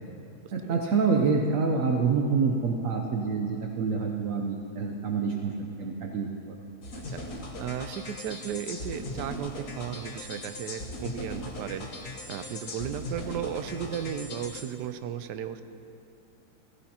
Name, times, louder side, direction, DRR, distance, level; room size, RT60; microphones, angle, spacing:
voice 1, 0.5-5.5 5.8-6.6, right 5 dB, 60° right, 2 dB, 1.0 m, -27 dB
sound 1, 6.8-14.6, left 1 dB, 65° left, 1.7 m, -39 dB
voice 2, 7.6-11.9 12.3-15.6, right 9 dB, 85° right, 10 dB, 1.2 m, -35 dB
15.5 x 14.5 x 2.9 m, 2.7 s
omnidirectional pair, 1.8 m